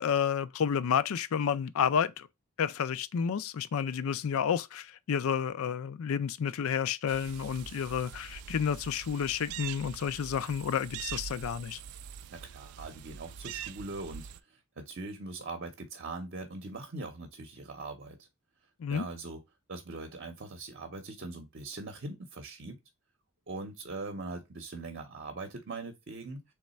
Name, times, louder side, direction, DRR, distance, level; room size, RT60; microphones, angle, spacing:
voice 1, 0.0-2.3 2.6-11.8 18.8-19.1, left 7 dB, 70° left, 0.4 m, -30 dB
sound 1, 7.1-14.4, right 9 dB, 75° right, 0.3 m, -44 dB
voice 2, 12.3-18.3 18.9-19.4 19.7-22.8 23.5-26.4, right 3 dB, 50° right, 0.7 m, -41 dB
3.5 x 3.2 x 4.1 m
head